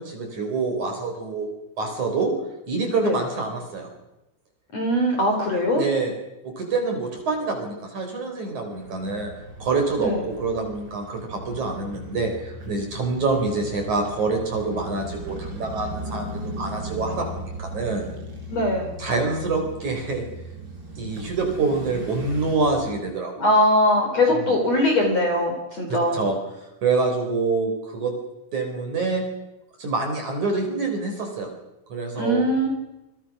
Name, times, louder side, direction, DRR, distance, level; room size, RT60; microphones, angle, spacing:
voice 1, 0.0-1.5 1.8-2.3 2.7-3.9 5.8-6.1 6.4-9.3 9.6-18.0 19.0-20.3 21.0-23.3 25.9-28.1 28.5-29.2 29.8-31.5 31.9-32.5, right 3 dB, 35° right, 3 dB, 5.3 m, -26 dB
voice 2, 4.7-5.9 10.0-10.2 18.5-18.9 23.4-26.2 32.2-32.7, left 1 dB, 35° left, 3 dB, 4.6 m, -21 dB
sound 1, 8.7-23.0, right 1 dB, 20° right, 5.1 m, -37 dB
29.0 x 23.5 x 6.2 m, 0.93 s
omnidirectional pair, 5.9 m